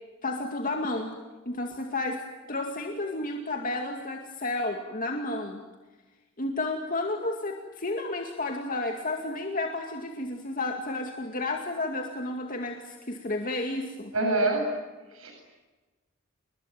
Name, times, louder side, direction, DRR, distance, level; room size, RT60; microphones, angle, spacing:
voice 1, 0.2-1.2 1.5-2.2 2.5-5.6 6.4-14.1, left 2 dB, 40° left, 3 dB, 2.3 m, -31 dB
voice 2, 14.1-14.6 15.1-15.3, right 2 dB, 85° right, 2 dB, 7.7 m, -25 dB
29.5 x 22.0 x 9.1 m, 1.2 s
head